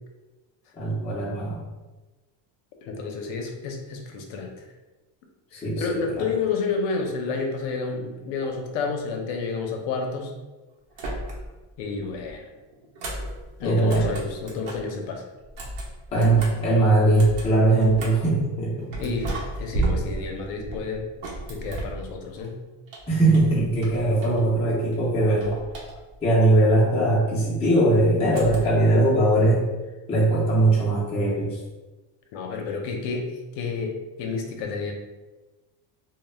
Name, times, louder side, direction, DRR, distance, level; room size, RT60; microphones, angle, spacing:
voice 1, 0.7-1.6 5.5-6.2 13.6-14.1 16.1-19.1 23.1-25.6 26.2-29.7 30.1-31.6, right 2 dB, 15° left, -6 dB, 0.3 m, -20 dB
voice 2, 2.8-4.5 5.5-10.3 11.8-12.4 13.6-15.2 19.0-19.3 19.6-21.0 21.5-22.6 32.3-34.9, left 4 dB, 70° left, 3 dB, 0.6 m, -30 dB
sound 1, 10.9-11.7 12.0-14.9 15.4-18.3 18.9-22.5 22.9-24.6 24.9-26.3 28.3-28.9, right 2 dB, 70° right, 0.8 m, -34 dB
2.1 x 2.0 x 3.1 m, 1.2 s
cardioid pair, 165°, 47 cm